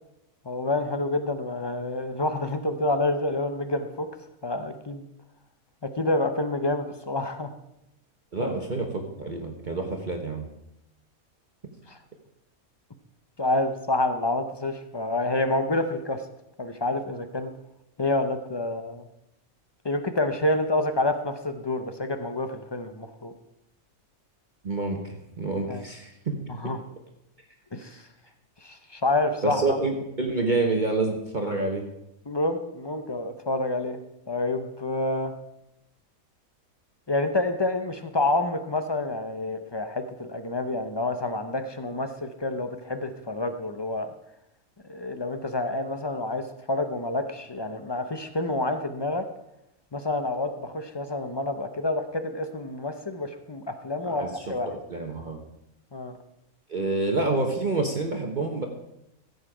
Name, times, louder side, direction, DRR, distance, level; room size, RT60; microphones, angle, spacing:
voice 1, 0.4-4.1 4.4-5.0 5.8-7.5 8.4-8.5 11.9-12.0 13.4-16.2 16.6-17.5 18.0-19.0 19.8-23.3 25.7-25.8 26.5-26.8 27.7-28.1 28.6-29.8 32.3-34.0 34.3-35.3 37.1-44.1 44.8-49.3 49.9-54.8 55.9-56.2, left 2 dB, 30° left, 8 dB, 0.4 m, -28 dB
voice 2, 8.3-10.5 24.6-26.3 26.6-26.7 29.4-31.8 54.0-55.4 56.7-58.7, right 3 dB, 35° right, 2 dB, 1.1 m, -28 dB
15.0 x 8.1 x 5.0 m, 0.85 s
omnidirectional pair, 1.5 m